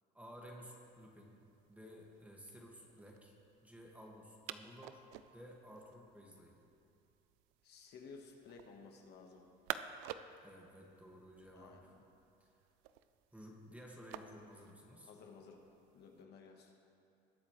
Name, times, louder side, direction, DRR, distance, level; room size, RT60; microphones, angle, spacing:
voice 1, 0.1-1.3 1.7-3.3 3.6-5.0 5.3-6.5 10.4-11.9 12.4-12.5 13.3-15.1, equal, 5° right, -1 dB, 2.0 m, -54 dB
sound 1, 0.8-16.2, right 11 dB, 80° right, 0.5 m, -53 dB
voice 2, 7.6-9.5 11.5-12.0 15.1-15.6 15.9-16.8, left 5 dB, 55° left, 2 dB, 1.6 m, -55 dB
20.5 x 8.3 x 3.3 m, 2.6 s
supercardioid pair, 95°, 20 cm